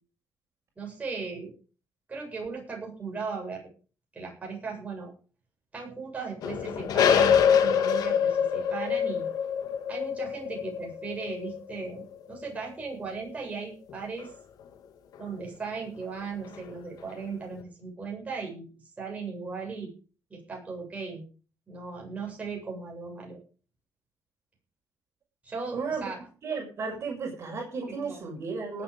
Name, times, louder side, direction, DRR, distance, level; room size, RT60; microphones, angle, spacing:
voice 1, 0.8-1.5 2.1-3.7 4.1-5.1 5.7-9.3 9.9-14.3 15.2-18.7 19.0-19.9 20.3-21.2 21.7-23.4 25.4-26.3 26.9-27.2 27.9-28.3, right 4 dB, 25° right, -1 dB, 7.7 m, -37 dB
sound 1, 6.4-12.8 14.2-14.3, left 8 dB, 85° left, 2.0 m, -25 dB
voice 2, 25.7-26.1 26.4-28.8, right 4 dB, 45° right, 1 dB, 6.8 m, -34 dB
19.0 x 8.6 x 5.2 m, 0.38 s
cardioid pair, 135°, 6 cm